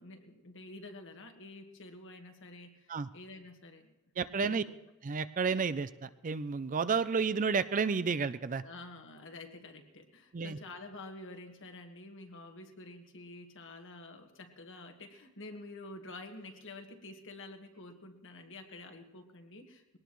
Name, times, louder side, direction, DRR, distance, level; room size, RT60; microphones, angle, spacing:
voice 1, 0.0-3.9 4.4-4.8 8.6-20.0, left 2 dB, 60° left, 5 dB, 1.6 m, -49 dB
voice 2, 4.2-4.6 5.0-8.6 10.3-10.6, right 5 dB, 35° right, 13 dB, 0.4 m, -31 dB
21.5 x 18.5 x 3.1 m, 1.1 s
head